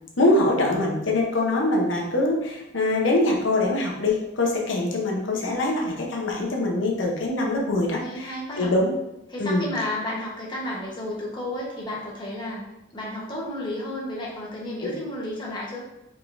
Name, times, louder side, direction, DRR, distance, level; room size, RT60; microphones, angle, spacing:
voice 1, 0.2-8.9 9.4-9.7, left 2 dB, 85° left, -1 dB, 0.8 m, -23 dB
voice 2, 8.0-8.7 9.3-12.6 12.9-15.8, left 1 dB, 25° left, -5 dB, 1.0 m, -32 dB
4.8 x 3.6 x 2.5 m, 0.89 s
head